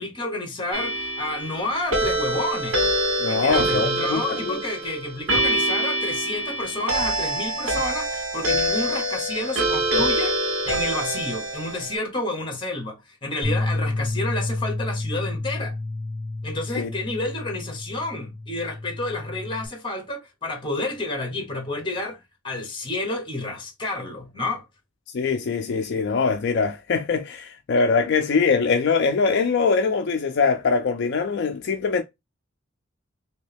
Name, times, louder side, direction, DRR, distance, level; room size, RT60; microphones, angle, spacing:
voice 1, 0.0-2.8 3.2-10.3 10.7-15.8 16.4-24.6, left 2 dB, 25° left, 1.1 m, -30 dB
sound 1, 0.7-11.9, right 1 dB, 90° right, 1.6 m, -25 dB
voice 2, 3.2-4.6 16.8-16.9 25.1-32.0, left 5 dB, 60° left, 0.4 m, -22 dB
Bass guitar, 13.4-19.7, left 2 dB, 10° right, 2.0 m, -30 dB
3.1 x 2.8 x 3.2 m
head